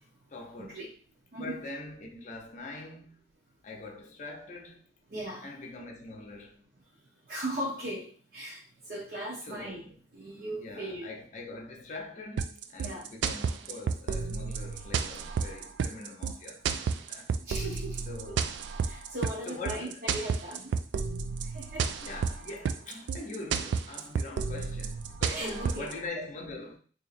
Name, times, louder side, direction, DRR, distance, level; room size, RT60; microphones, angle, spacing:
voice 1, 0.3-0.9 1.3-3.3 3.6-4.8 5.4-6.7 9.4-9.9 10.5-17.3 18.1-18.5 19.5-20.0 22.0-26.8, left 3 dB, 45° left, 0.6 m, -43 dB
voice 2, 5.1-5.5 7.3-9.8 10.1-11.1 12.8-13.1 17.4-18.3 18.8-20.7 21.4-21.9 25.3-26.2, right 1 dB, 55° right, 0.9 m, -38 dB
sound 1, 12.4-25.9, right 6 dB, 85° right, 0.3 m, -31 dB
2.9 x 2.8 x 4.1 m
head